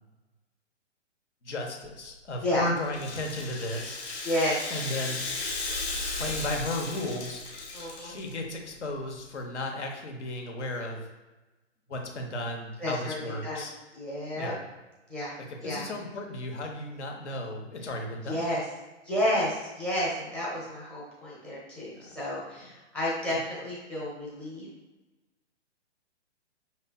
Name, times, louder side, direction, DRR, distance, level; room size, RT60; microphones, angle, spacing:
voice 1, 1.4-4.0 4.7-5.2 6.1-7.4 8.0-11.1 11.9-13.7 14.4-14.5 15.6-18.4 21.9-22.2 23.3-23.4, left 1 dB, 70° left, 2 dB, 1.0 m, -34 dB
sound 1, 1.8-4.9 5.2-9.4, left 1 dB, 50° left, 1.0 m, -44 dB
Rattle (instrument), 2.8-8.3, left 3 dB, 25° left, 0.9 m, -36 dB
voice 2, 4.2-4.6 7.7-8.1 12.8-13.6 13.9-14.5 15.1-15.3 15.6-15.8 18.3-18.6 19.0-24.7, left 1 dB, 5° left, -6 dB, 0.6 m, -31 dB
5.3 x 3.2 x 2.2 m, 1.1 s
figure-of-eight pair, 125°, 36 cm